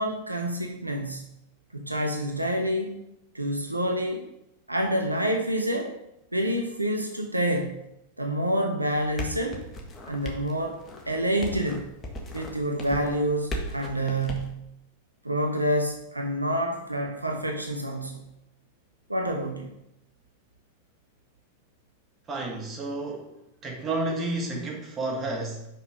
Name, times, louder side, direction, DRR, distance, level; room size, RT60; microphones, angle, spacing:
voice 1, 0.0-1.3 1.7-3.0 3.3-4.2 4.7-5.9 6.3-7.8 8.2-9.6 10.1-10.8 11.1-11.9 12.3-14.7 15.2-18.3 19.1-19.7, right 1 dB, 85° right, 2 dB, 0.9 m, -28 dB
sound 1, 8.9-14.5, equal, 20° left, 1.5 m, -37 dB
voice 2, 22.3-23.4 23.6-25.7, right 2 dB, 25° right, 0 dB, 1.7 m, -31 dB
5.6 x 5.4 x 5.1 m, 0.84 s
figure-of-eight pair, 90°, 0 cm